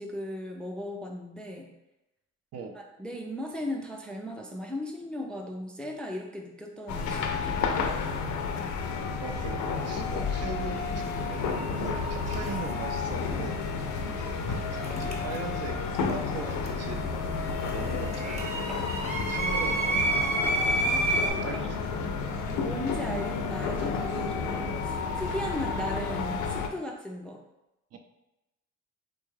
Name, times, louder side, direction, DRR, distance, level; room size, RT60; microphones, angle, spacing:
voice 1, 0.0-1.7 2.7-8.0 14.0-14.2 20.8-21.7 22.4-27.4, left 1 dB, 5° left, 1 dB, 0.3 m, -37 dB
sound 1, 6.9-26.7, left 5 dB, 75° left, 0.5 m, -31 dB
voice 2, 9.2-13.6 14.5-18.5 19.2-20.2 21.2-21.8 27.9-28.0, right 4 dB, 55° right, 5 dB, 0.5 m, -40 dB
sound 2, 10.8-10.9 12.2-12.7 14.8-15.8 16.1-21.3, right 2 dB, 20° right, 0.8 m, -30 dB
3.6 x 2.3 x 3.1 m, 0.93 s
cardioid pair, 90°, 30 cm